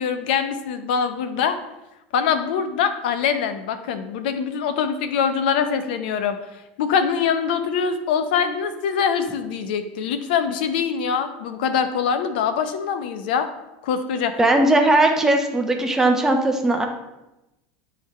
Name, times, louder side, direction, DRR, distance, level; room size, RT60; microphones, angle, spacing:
voice 1, 0.0-1.6 2.1-6.4 6.8-13.5 13.8-14.3, left 7 dB, 80° left, 9 dB, 0.6 m, -23 dB
voice 2, 14.4-16.9, right 2 dB, 10° right, 3 dB, 0.8 m, -18 dB
10.0 x 3.9 x 3.1 m, 0.95 s
supercardioid pair, 140°, 5 cm